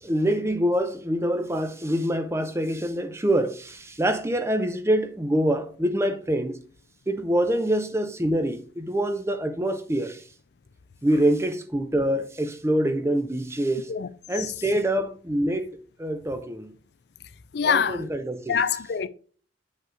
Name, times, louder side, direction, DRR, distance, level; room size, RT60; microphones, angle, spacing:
voice 1, 0.0-6.6 7.1-10.2 11.0-13.9 14.3-16.7 17.6-18.6, right 1 dB, 15° right, 0.6 m, -25 dB
voice 2, 17.5-18.1 18.5-19.1, left 7 dB, 60° left, 0.4 m, -25 dB
7.8 x 5.3 x 3.7 m
head